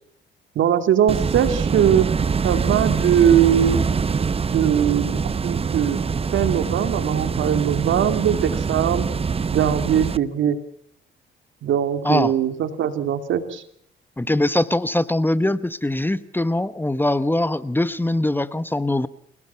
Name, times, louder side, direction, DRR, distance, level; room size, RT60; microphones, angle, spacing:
voice 1, 0.6-2.1 2.4-3.8 4.5-6.0 6.3-9.1 9.5-10.6 11.6-13.6 14.3-14.4, right 9 dB, 75° right, 9 dB, 2.7 m, -21 dB
sound 1, 1.1-10.2, right 5 dB, 30° right, 0.8 m, -24 dB
voice 2, 14.2-19.1, left 1 dB, 10° left, 15 dB, 1.1 m, -22 dB
29.5 x 18.5 x 5.7 m, 0.67 s
cardioid pair, 90°, 20 cm